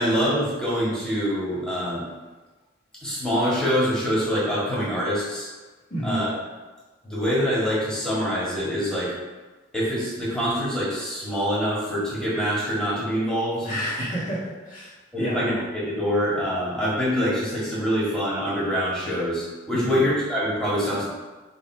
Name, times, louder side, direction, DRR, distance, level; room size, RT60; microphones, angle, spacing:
voice 1, 0.0-2.0 3.0-5.5 6.0-6.3 7.0-9.1 9.7-13.7 15.1-21.0, equal, 5° left, -9 dB, 1.8 m, -25 dB
voice 2, 5.9-6.2 13.6-15.4 19.7-20.0, equal, 45° left, -8 dB, 1.9 m, -30 dB
6.8 x 3.4 x 4.6 m, 1.3 s
head